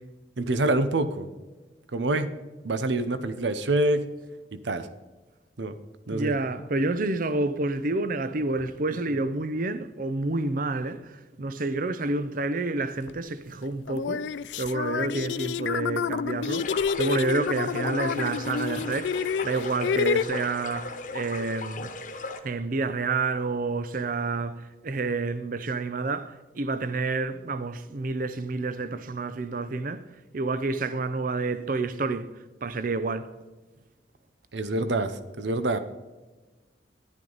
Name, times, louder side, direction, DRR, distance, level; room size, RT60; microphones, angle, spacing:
voice 1, 0.4-1.3 1.9-2.3 2.6-4.1 4.5-4.9 5.6-5.8 6.1-6.3 34.5-35.8, right 2 dB, 90° right, 0.8 m, -26 dB
voice 2, 6.1-11.1 11.4-14.2 14.6-21.9 22.4-30.1 30.3-32.3 32.6-33.3, right 3 dB, 50° right, 0.6 m, -29 dB
sound 1, 13.1-13.2 13.9-20.2, left 6 dB, 90° left, 0.3 m, -29 dB
sound 2, 16.6-22.4, left 3 dB, 45° left, 1.1 m, -37 dB
10.5 x 10.5 x 4.0 m
head